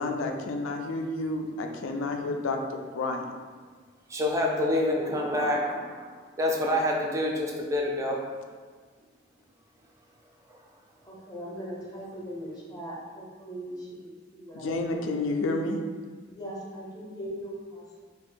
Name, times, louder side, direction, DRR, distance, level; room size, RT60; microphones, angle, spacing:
voice 1, 0.0-3.3 14.5-15.8, left 2 dB, 70° left, 4 dB, 0.4 m, -30 dB
voice 2, 4.1-6.1 6.4-8.2, left 1 dB, 15° right, -1 dB, 0.3 m, -27 dB
voice 3, 11.0-15.0 16.2-17.6, equal, 20° left, -5 dB, 0.6 m, -40 dB
2.6 x 2.4 x 3.7 m, 1.5 s
head